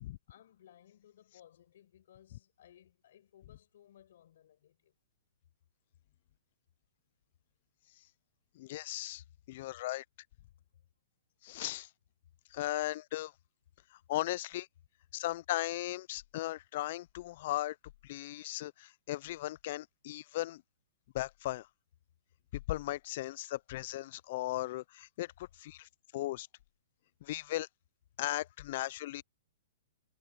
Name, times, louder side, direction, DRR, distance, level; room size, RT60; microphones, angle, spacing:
voice 1, 0.3-5.0, left 11 dB, 60° left, 6.3 m, -61 dB
voice 2, 8.6-10.0 11.4-11.9 12.5-13.3 13.9-14.7 15.1-17.8 18.0-20.6 21.1-21.7 22.5-26.5 27.2-27.7 28.2-29.2, left 16 dB, 45° left, 0.3 m, -37 dB
hypercardioid pair, 160°, 0 cm